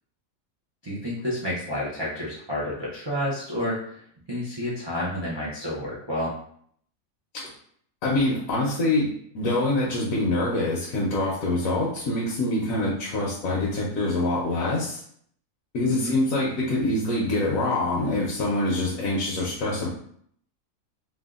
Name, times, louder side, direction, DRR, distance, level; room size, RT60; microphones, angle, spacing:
voice 1, 0.8-4.0 4.3-6.3 15.9-16.2, left 1 dB, 40° right, -8 dB, 0.3 m, -30 dB
voice 2, 8.0-9.1 9.3-15.0 15.7-19.9, left 2 dB, 75° left, -5 dB, 1.1 m, -25 dB
3.4 x 2.2 x 2.4 m, 0.64 s
omnidirectional pair, 1.5 m